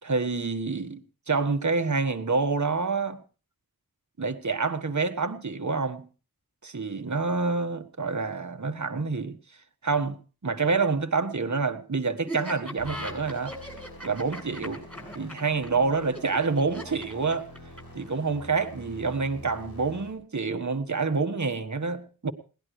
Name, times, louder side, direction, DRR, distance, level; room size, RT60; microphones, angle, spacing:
voice 1, 0.0-1.0 1.3-3.2 4.2-6.1 6.6-9.4 9.8-13.6 14.0-14.8 15.1-17.5 17.9-22.3, right 4 dB, 50° right, 1.6 m, -27 dB
Laughter, 12.3-18.0, left 1 dB, 5° left, 7.3 m, -39 dB
sound 1, 12.8-20.1, left 1 dB, 75° left, 6.5 m, -46 dB
21.0 x 18.5 x 3.2 m
wide cardioid pair, 70°, 36 cm